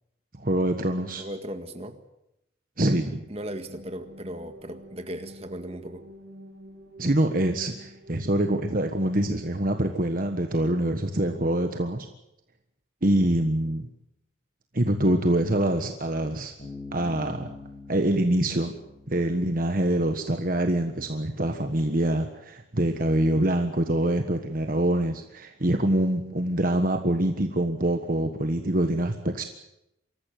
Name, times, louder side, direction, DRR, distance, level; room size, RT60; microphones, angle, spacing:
voice 1, 0.4-1.2 2.8-3.2 7.0-12.1 13.0-13.9 14.7-16.5 16.9-17.5 17.9-18.7 19.1-29.4, right 1 dB, 45° right, 5 dB, 1.4 m, -25 dB
voice 2, 1.2-2.0 3.3-6.0, right 1 dB, 30° right, 7 dB, 1.9 m, -37 dB
sound 1, 3.2-11.0, equal, 65° right, 4.2 m, -48 dB
Bass guitar, 16.6-20.2, left 3 dB, 40° left, 5.9 m, -44 dB
24.5 x 14.5 x 9.3 m, 0.85 s
head